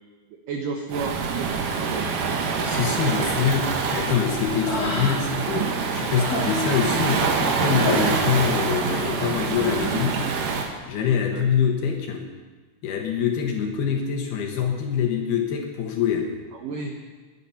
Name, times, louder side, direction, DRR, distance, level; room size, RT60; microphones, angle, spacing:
voice 1, 0.5-2.1 11.3-11.5 16.5-17.0, right 4 dB, 80° right, 3 dB, 1.9 m, -32 dB
Waves surf, 0.9-10.7, right 5 dB, 65° right, 2.2 m, -25 dB
voice 2, 2.6-10.3 10.9-12.3 12.8-16.4, left 7 dB, 65° left, 3 dB, 2.9 m, -25 dB
Human voice, 4.4-5.5 5.8-8.8 9.1-9.9, left 1 dB, 25° left, 2.6 m, -31 dB
21.5 x 9.3 x 5.8 m, 1.3 s
omnidirectional pair, 5.5 m